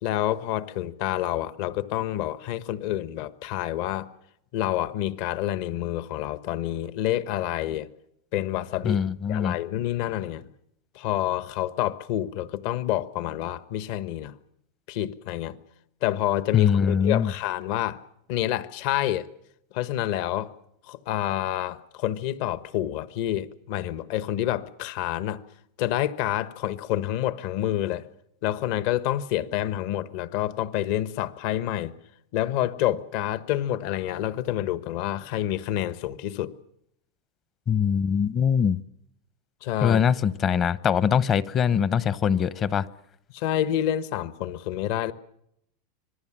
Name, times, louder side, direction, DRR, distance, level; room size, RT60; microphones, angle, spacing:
voice 1, 0.0-4.1 4.5-7.9 8.3-9.0 9.3-10.5 10.9-14.3 14.9-15.6 16.0-18.0 18.3-19.3 19.7-20.5 20.9-25.4 25.8-28.1 28.4-31.9 32.3-36.5 39.6-40.0 43.3-45.1, left 12 dB, 55° left, 1.1 m, -28 dB
voice 2, 8.8-9.6 16.5-17.3 37.7-38.8 39.8-42.9, left 7 dB, 30° left, 0.8 m, -22 dB
26.0 x 20.0 x 7.4 m
supercardioid pair, 140°, 0 cm